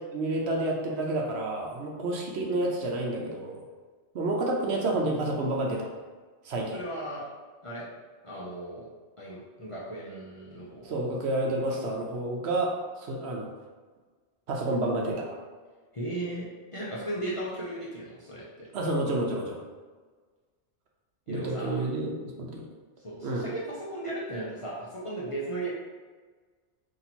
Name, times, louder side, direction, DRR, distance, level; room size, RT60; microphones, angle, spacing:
voice 1, 0.1-3.7 4.1-5.9 6.4-6.8 10.8-12.7 13.0-13.5 14.5-15.4 18.7-19.6 21.3-22.6 23.2-23.5, right 2 dB, 70° right, -1 dB, 0.9 m, -29 dB
voice 2, 6.7-7.2 7.6-7.8 8.2-8.9 9.2-11.0 15.9-16.4 16.7-18.7 21.3-21.8 23.0-25.7, right 1 dB, 35° left, -7 dB, 0.6 m, -36 dB
2.9 x 2.8 x 4.1 m, 1.4 s
omnidirectional pair, 1.2 m